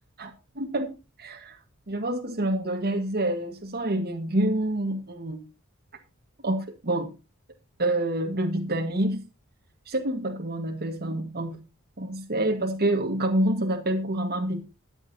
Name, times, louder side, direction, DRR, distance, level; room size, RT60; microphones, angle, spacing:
voice 1, 0.2-1.6 1.9-5.5 6.4-7.1 7.8-9.2 9.9-11.6 12.0-14.6, right 1 dB, 50° right, 2 dB, 1.6 m, -27 dB
14.0 x 9.2 x 2.8 m, 0.29 s
head